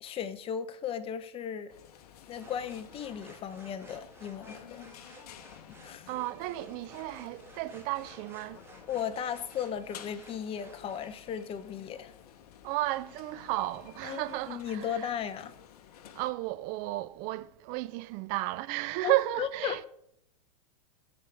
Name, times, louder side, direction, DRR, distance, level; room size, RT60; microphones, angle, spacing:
voice 1, 0.0-1.7 2.3-4.9 5.8-6.1 8.9-12.1 14.0-15.5 19.0-19.9, left 8 dB, 25° left, 0.8 m, -36 dB
sound 1, 1.7-16.3, left 10 dB, 65° left, 0.9 m, -53 dB
sound 2, 2.4-11.1, right 2 dB, 10° right, 1.9 m, -54 dB
voice 2, 6.1-8.6 12.6-15.1 16.2-19.8, right 18 dB, 40° right, 0.5 m, -33 dB
15.0 x 5.0 x 3.4 m
hypercardioid pair, 115°, 21 cm